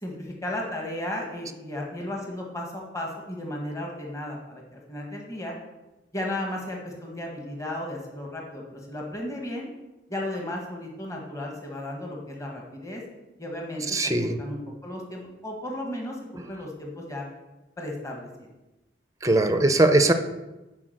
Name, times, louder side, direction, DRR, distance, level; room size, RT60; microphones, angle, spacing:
voice 1, 0.0-5.5 6.1-9.7 10.1-13.0 13.4-13.8 14.2-17.2 17.8-18.5, left 1 dB, 15° left, -1 dB, 1.5 m, -34 dB
voice 2, 13.9-14.4 19.2-20.1, right 2 dB, 20° right, 8 dB, 0.6 m, -20 dB
9.7 x 4.9 x 6.5 m, 1.0 s
head